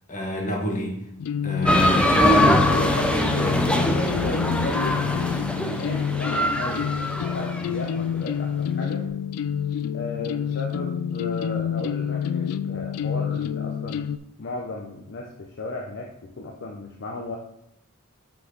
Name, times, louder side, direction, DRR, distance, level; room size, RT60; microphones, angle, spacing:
voice 1, 0.1-1.0 1.4-2.7 3.3-3.7, right 1 dB, 35° left, 1 dB, 1.4 m, -26 dB
sound 1, 1.2-14.2, left 8 dB, 85° left, 0.3 m, -28 dB
sound 2, 1.7-7.7, left 1 dB, 5° left, 0.6 m, -23 dB
voice 2, 2.3-5.0 5.5-9.0 9.9-14.0 14.4-17.4, left 3 dB, 50° left, 0 dB, 0.7 m, -34 dB
5.9 x 5.7 x 3.9 m, 0.77 s
head